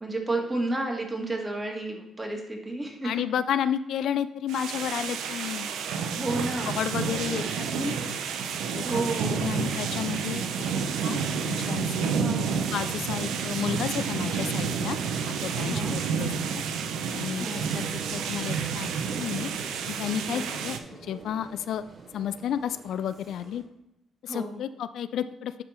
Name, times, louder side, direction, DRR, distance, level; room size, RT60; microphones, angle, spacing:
voice 1, 0.0-3.1 6.2-6.7 7.3-7.4 8.8-9.4 12.1-12.5 15.6-16.0 17.4-17.7 20.3-20.5 24.3-24.6, right 2 dB, 20° right, 1 dB, 1.9 m, -31 dB
voice 2, 3.0-5.7 6.7-8.2 8.7-10.7 11.0-12.2 12.7-16.6 17.1-17.5 17.7-17.8 18.1-18.9 19.2-19.5 19.9-20.8 21.0-21.8 22.1-23.6 24.2-25.6, left 9 dB, 75° left, 12 dB, 0.3 m, -32 dB
sound 1, 4.5-20.8, right 6 dB, 85° right, 0.6 m, -30 dB
sound 2, 17.3-23.6, right 3 dB, 50° right, 1.9 m, -45 dB
10.5 x 3.6 x 4.4 m, 0.88 s
cardioid pair, 90°, 0 cm